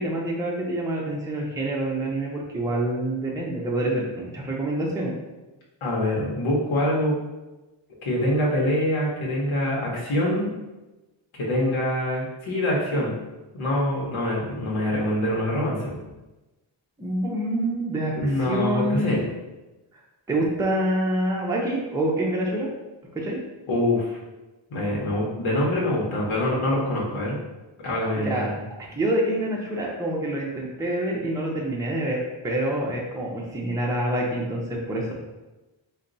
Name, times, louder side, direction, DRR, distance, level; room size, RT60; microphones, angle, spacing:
voice 1, 0.0-5.1 17.0-19.2 20.3-22.7 23.2-23.4 28.2-28.5 28.9-32.2 32.4-35.1, right 1 dB, 5° right, -3 dB, 0.6 m, -26 dB
voice 2, 5.8-7.2 8.0-10.5 11.3-13.1 13.5-16.0 18.1-19.2 23.7-24.2 24.7-27.4 27.8-28.6, left 1 dB, 80° left, -4 dB, 1.0 m, -25 dB
4.2 x 2.2 x 3.9 m, 1.1 s
wide cardioid pair, 110°, 48 cm